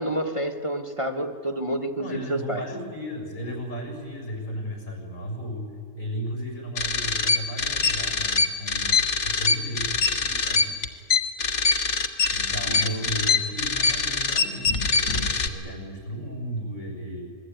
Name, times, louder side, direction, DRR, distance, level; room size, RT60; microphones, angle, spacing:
voice 1, 0.0-2.6 12.7-13.4, right 1 dB, 25° right, 6 dB, 1.3 m, -29 dB
voice 2, 2.0-10.7 12.3-17.3, equal, 85° left, 2 dB, 7.1 m, -35 dB
sound 1, 6.8-15.5, left 4 dB, 60° left, 1.7 m, -23 dB
27.5 x 21.0 x 9.2 m, 2.1 s
omnidirectional pair, 1.4 m